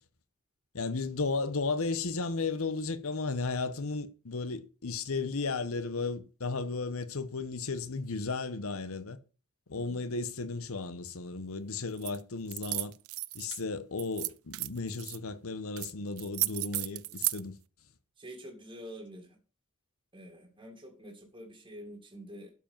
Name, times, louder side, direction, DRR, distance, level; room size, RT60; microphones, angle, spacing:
voice 1, 0.7-9.2 9.7-12.9 13.3-17.6, left 3 dB, 70° left, 1.0 m, -34 dB
sound 1, 12.0-12.2 12.5-13.6 14.0-15.2 15.8-15.9 16.2-17.4, right 20 dB, 65° right, 0.4 m, -34 dB
voice 2, 18.2-19.4 20.1-22.5, equal, 20° right, 2.0 m, -47 dB
12.0 x 5.2 x 5.4 m
head